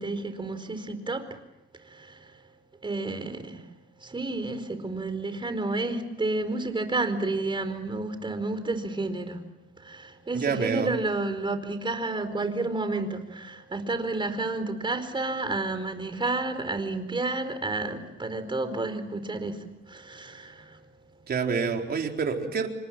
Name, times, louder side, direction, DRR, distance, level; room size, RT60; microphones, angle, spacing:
voice 1, 0.0-1.4 1.8-2.4 2.8-3.7 4.0-9.5 9.8-20.8, right 2 dB, 25° right, 9 dB, 4.6 m, -31 dB
voice 2, 10.3-10.9 21.3-22.7, right 5 dB, 50° right, 3 dB, 4.3 m, -27 dB
28.5 x 25.0 x 7.6 m, 0.91 s
cardioid pair, 90°, 20 cm